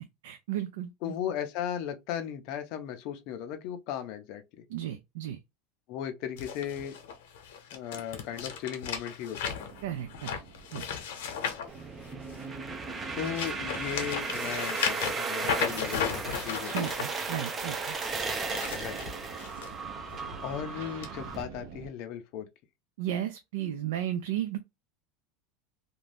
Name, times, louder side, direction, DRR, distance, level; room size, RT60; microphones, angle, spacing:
voice 1, 0.2-1.1 4.7-5.4 9.8-10.4 10.7-10.9 16.6-18.0 23.0-24.6, right 11 dB, 90° right, 0.4 m, -34 dB
voice 2, 1.0-4.4 5.9-7.0 7.7-9.7 13.2-16.1 16.4-16.7 18.8-19.0 20.4-22.5, left 9 dB, 45° left, 0.5 m, -36 dB
sound 1, 6.4-12.5 13.0-17.0 18.3-19.7 20.1-20.4 21.0-21.1, left 7 dB, 90° left, 0.8 m, -35 dB
sound 2, 9.5-21.9, right 4 dB, 65° right, 0.8 m, -50 dB
sound 3, 11.7-21.4, right 4 dB, 15° right, 0.4 m, -35 dB
2.5 x 2.2 x 3.2 m
supercardioid pair, 175°, 0 cm